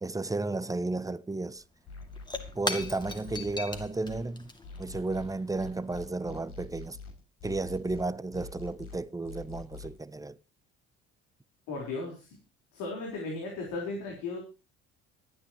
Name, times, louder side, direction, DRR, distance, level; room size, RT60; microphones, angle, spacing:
voice 1, 0.0-1.6 2.5-4.5 4.8-7.0 7.4-10.4, right 2 dB, 10° right, 0.8 m, -33 dB
Shatter / Crushing, 1.3-1.4 1.6-6.5, left 2 dB, 15° left, 2.4 m, -40 dB
sound 1, 1.9-4.2 4.6-10.0, left 4 dB, 65° left, 6.5 m, -44 dB
voice 2, 11.7-12.4 12.7-14.4, left 3 dB, 85° left, 4.3 m, -36 dB
25.0 x 9.6 x 3.0 m
supercardioid pair, 80°, 29 cm